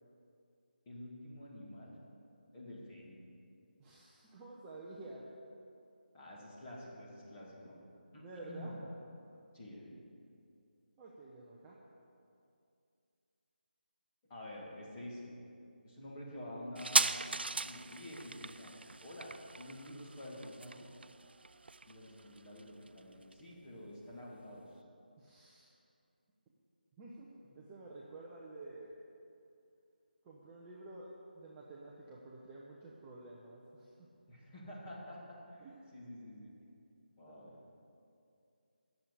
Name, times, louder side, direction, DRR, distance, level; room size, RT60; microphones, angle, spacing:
voice 1, 0.9-1.9 2.5-3.2 6.1-7.8 8.1-8.8 9.5-10.0 14.3-15.3 15.8-17.2 17.6-20.9 21.9-24.7 34.3-35.7 35.9-36.5 37.2-37.5, left 1 dB, 15° left, -7 dB, 2.1 m, -48 dB
voice 2, 3.8-5.3 8.2-8.8 9.2-9.4 11.0-11.8 25.2-25.7 27.0-28.9 30.2-33.9 35.6-36.1 37.3-37.8, right 2 dB, 10° right, -5 dB, 0.6 m, -51 dB
sound 1, 16.8-23.9 24.1-24.2, right 3 dB, 85° right, 0.4 m, -37 dB
10.0 x 7.4 x 8.2 m, 2.5 s
figure-of-eight pair, 170°, 5 cm